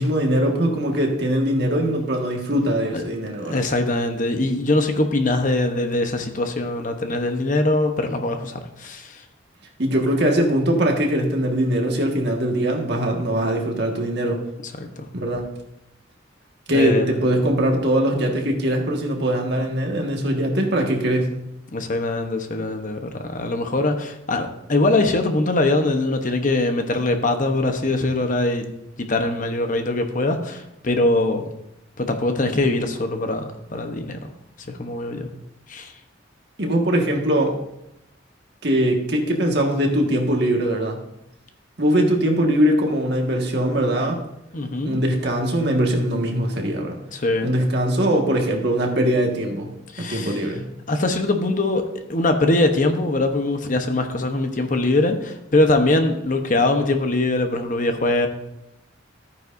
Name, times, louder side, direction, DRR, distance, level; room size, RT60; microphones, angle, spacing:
voice 1, 0.0-3.6 9.8-14.4 15.1-15.4 16.7-21.4 36.6-37.6 38.6-41.0 41.8-44.2 44.8-47.0 47.4-50.7, right 1 dB, 60° right, 1 dB, 1.7 m, -21 dB
voice 2, 3.5-9.2 14.8-15.1 16.7-17.1 21.7-28.6 29.0-31.4 32.0-34.3 34.7-35.3 35.7-35.9 44.5-45.0 47.1-47.5 49.9-50.4 50.9-58.3, left 2 dB, 45° left, 6 dB, 1.0 m, -22 dB
14.0 x 9.3 x 2.6 m, 0.84 s
head